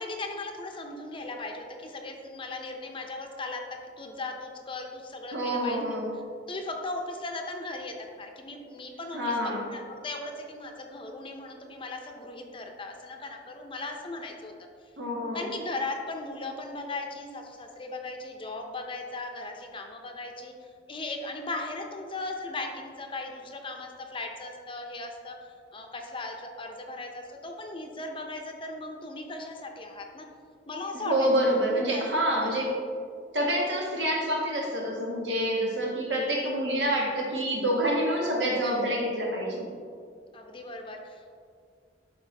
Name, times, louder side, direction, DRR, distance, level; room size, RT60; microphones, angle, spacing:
voice 1, 0.0-6.0 6.5-14.5 15.3-30.3 30.7-32.5 40.3-41.4, left 2 dB, 30° left, 3 dB, 0.7 m, -38 dB
voice 2, 5.3-6.1 9.1-9.7 15.0-15.5 30.9-32.7 33.3-39.7, equal, 70° right, -2 dB, 1.6 m, -27 dB
12.0 x 4.5 x 3.4 m, 2.2 s
head